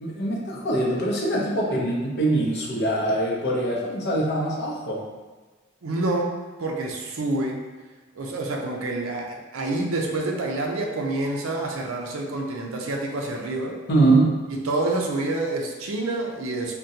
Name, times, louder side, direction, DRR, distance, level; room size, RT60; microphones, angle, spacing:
voice 1, 0.0-5.0 13.9-14.3, right 2 dB, 55° left, -3 dB, 0.6 m, -23 dB
voice 2, 5.8-7.6 8.2-13.8 14.5-16.7, right 2 dB, 80° right, 0 dB, 0.5 m, -27 dB
3.7 x 2.2 x 2.7 m, 1.3 s
head